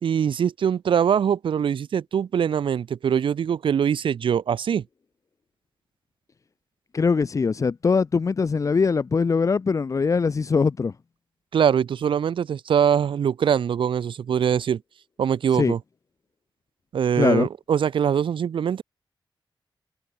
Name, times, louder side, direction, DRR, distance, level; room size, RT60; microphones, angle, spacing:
voice 1, 0.0-4.8 11.5-14.8 15.2-15.8 16.9-18.8, right 8 dB, 90° right, 3.7 m, -23 dB
voice 2, 6.9-10.9 15.5-15.7 17.2-17.5, left 5 dB, 40° left, 2.3 m, -22 dB
wide cardioid pair, 150°, 8 cm